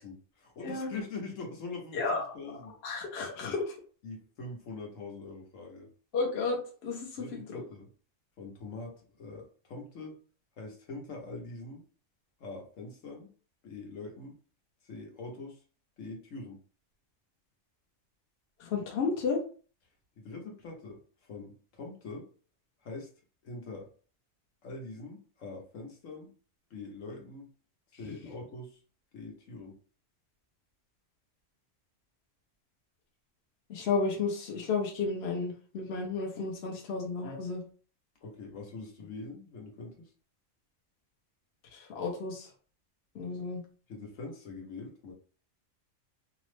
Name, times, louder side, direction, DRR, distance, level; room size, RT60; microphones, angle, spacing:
voice 1, 0.0-2.7 4.0-5.9 7.2-7.9 8.4-10.2 10.6-11.8 12.4-13.3 13.6-14.3 14.8-15.6 16.0-16.6 20.2-22.3 22.8-23.1 23.4-23.9 24.6-26.3 26.7-27.5 28.0-28.8 29.1-29.8 38.2-39.9 43.9-45.1, left 3 dB, 75° left, 0 dB, 1.2 m, -43 dB
voice 2, 1.9-2.2 2.8-3.8 6.1-7.3 7.5-7.6 18.6-19.4 33.7-37.6 41.7-42.5 43.1-43.6, left 4 dB, 60° left, -1 dB, 0.9 m, -32 dB
2.9 x 2.0 x 3.1 m, 0.40 s
omnidirectional pair, 1.3 m